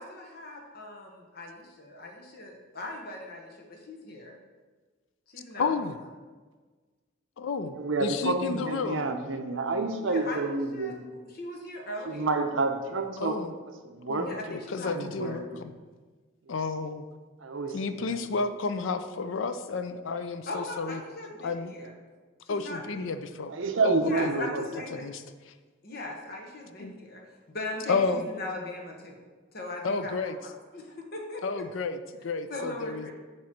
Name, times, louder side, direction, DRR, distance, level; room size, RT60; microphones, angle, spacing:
voice 1, 0.0-4.3 5.3-5.8 10.0-10.4 10.7-10.9 11.3-12.4 14.2-14.9 15.2-15.4 20.5-21.9 22.4-23.1 24.0-25.1 25.8-27.2 27.5-29.2 29.5-31.4 32.5-33.1, left 2 dB, 45° left, 0 dB, 1.0 m, -39 dB
voice 2, 5.6-6.0 7.4-9.1 13.2-13.5 14.1-15.7 16.5-17.0 17.7-21.0 21.4-21.7 22.5-23.5 23.8-24.5 24.9-25.5 26.8-26.9 27.9-28.3 29.8-30.4 31.4-33.1, left 4 dB, 70° left, 10 dB, 0.4 m, -31 dB
voice 3, 7.7-11.0 12.1-13.4 13.8-14.3 14.9-15.6 16.4-16.5 17.4-18.2 23.5-24.6, right 3 dB, 70° right, 6 dB, 0.6 m, -29 dB
7.5 x 3.1 x 5.9 m, 1.4 s
head